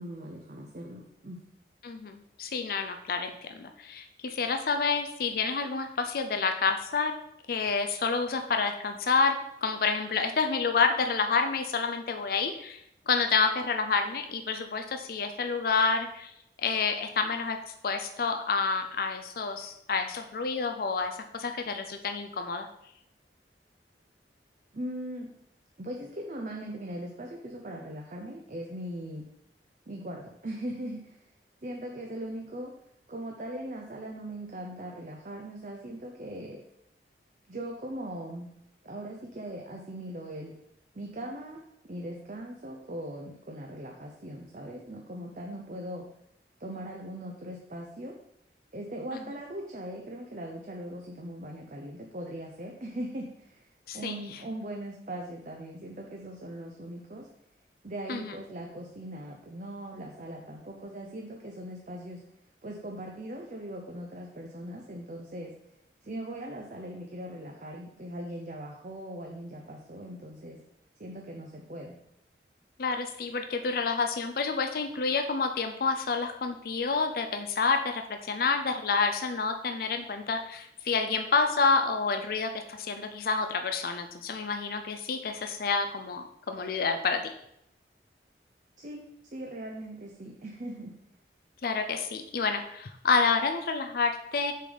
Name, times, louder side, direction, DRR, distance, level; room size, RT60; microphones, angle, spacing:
voice 1, 0.0-1.4 24.7-25.3 25.8-29.3 29.9-31.2 31.6-32.7 33.1-36.6 37.5-38.5 38.8-40.5 40.9-46.0 46.6-48.1 48.7-53.7 53.9-57.3 57.8-62.2 62.6-65.5 66.0-70.6 71.0-72.0 88.8-89.0 89.3-90.9, right 1 dB, 45° right, 1 dB, 0.7 m, -40 dB
voice 2, 1.8-7.1 7.5-16.3 16.6-22.7 53.9-54.2 58.1-58.3 72.8-87.2 91.6-94.5, left 4 dB, 55° left, 6 dB, 0.5 m, -29 dB
6.5 x 4.0 x 5.0 m, 0.77 s
head